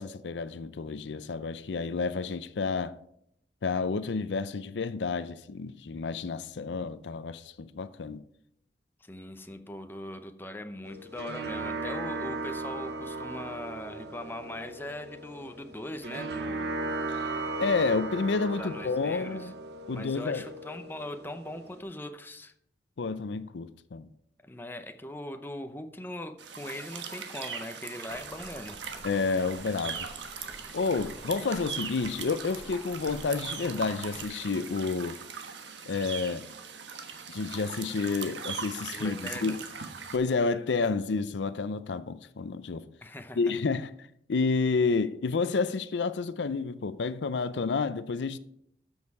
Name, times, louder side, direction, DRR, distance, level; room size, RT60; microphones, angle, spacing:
voice 1, 0.0-3.0 3.6-8.2 17.1-17.3 17.6-19.5 19.9-20.4 23.0-24.1 29.0-30.1 30.7-35.2 35.9-36.5 37.3-39.6 40.1-42.9 43.4-43.9 44.3-48.4, left 4 dB, 85° left, 0.5 m, -30 dB
voice 2, 9.0-16.7 18.4-19.5 19.9-22.5 24.4-28.8 38.9-39.6 43.0-43.4, left 1 dB, 10° left, 0.7 m, -40 dB
sound 1, 10.9-21.8, right 2 dB, 65° right, 0.9 m, -37 dB
sound 2, 26.4-40.2, right 6 dB, 90° right, 1.3 m, -40 dB
sound 3, 28.1-34.2, equal, 10° right, 1.1 m, -51 dB
13.0 x 6.4 x 4.7 m
head